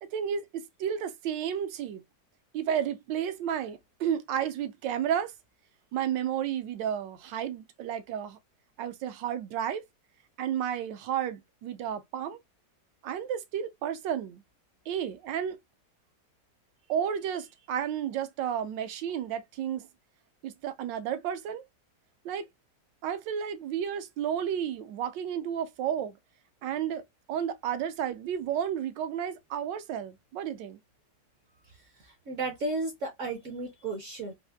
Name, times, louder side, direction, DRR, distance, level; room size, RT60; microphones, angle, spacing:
voice 1, 0.0-2.0 2.5-5.3 5.9-8.4 8.8-9.8 10.4-12.4 13.0-14.4 14.9-15.6 16.9-19.9 20.4-21.6 22.2-22.5 23.0-26.2 26.6-27.0 27.3-30.8, right 9 dB, 85° right, 1.3 m, -32 dB
voice 2, 32.3-34.3, right 2 dB, 60° right, 0.8 m, -33 dB
4.1 x 2.4 x 2.2 m
omnidirectional pair, 1.9 m